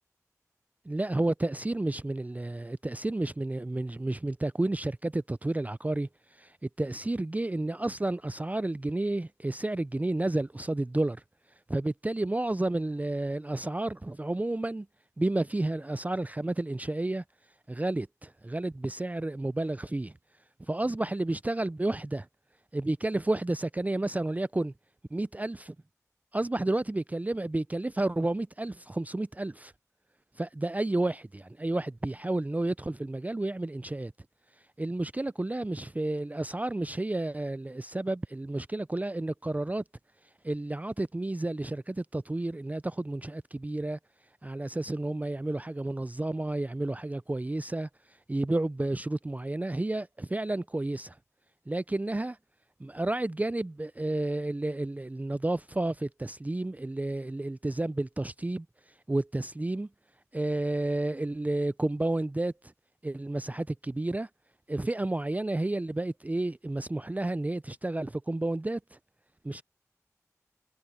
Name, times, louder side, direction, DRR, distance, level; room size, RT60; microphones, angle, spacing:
voice 1, 0.9-6.1 6.4-11.2 11.7-14.9 15.2-17.2 17.7-20.1 20.7-22.3 22.7-24.7 25.1-25.7 26.3-29.7 30.4-34.1 34.8-39.8 40.4-44.0 44.4-47.9 48.3-51.2 51.7-52.4 52.8-58.7 59.1-59.9 60.3-62.5 63.0-64.3 64.7-69.0 69.4-69.6, right 2 dB, 25° right, 0.3 m, -31 dB
wide cardioid pair, 50°, 6 cm